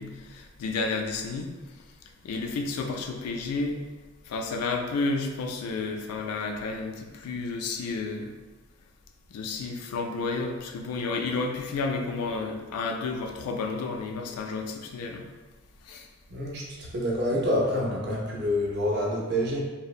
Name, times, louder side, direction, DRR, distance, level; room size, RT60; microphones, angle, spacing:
voice 1, 0.0-1.5 2.2-3.8 4.3-8.3 9.3-15.3 15.9-16.1, left 3 dB, 85° left, 3 dB, 0.3 m, -31 dB
voice 2, 16.3-19.6, equal, 50° right, -3 dB, 0.5 m, -27 dB
2.7 x 2.0 x 2.4 m, 1.3 s
head